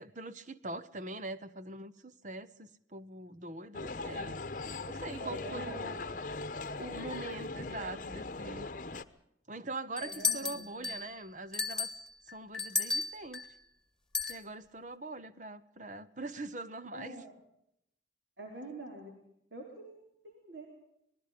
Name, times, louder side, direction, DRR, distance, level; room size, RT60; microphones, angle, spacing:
voice 1, 0.0-4.4 4.9-6.0 6.8-8.7 9.5-11.9 12.3-13.5 14.3-17.1, right 2 dB, 40° right, 13 dB, 1.1 m, -43 dB
sound 1, 3.7-9.0, left 3 dB, 45° left, 1.0 m, -40 dB
voice 2, 5.2-6.2 10.0-10.9 16.9-17.3 18.4-19.1 19.5-20.7, right 1 dB, 60° right, 1 dB, 4.4 m, -46 dB
sound 2, 10.0-11.1 11.5-13.5 14.1-14.4, left 4 dB, 5° left, 2.1 m, -33 dB
26.0 x 20.5 x 5.2 m, 0.76 s
head